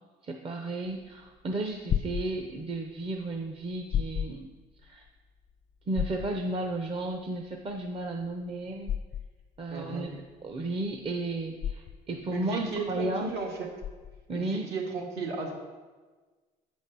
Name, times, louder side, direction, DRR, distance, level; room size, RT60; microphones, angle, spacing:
voice 1, 0.2-4.5 4.8-5.1 5.9-8.9 9.6-13.3 14.3-14.7, right 2 dB, 35° right, 3 dB, 0.7 m, -33 dB
sound 1, 0.9-14.4, left 9 dB, 45° left, 0.5 m, -35 dB
voice 2, 9.7-10.1 12.3-13.5 14.3-15.5, right 3 dB, 75° right, 1 dB, 2.1 m, -34 dB
8.1 x 5.2 x 6.6 m, 1.3 s
cardioid pair, 110°, 17 cm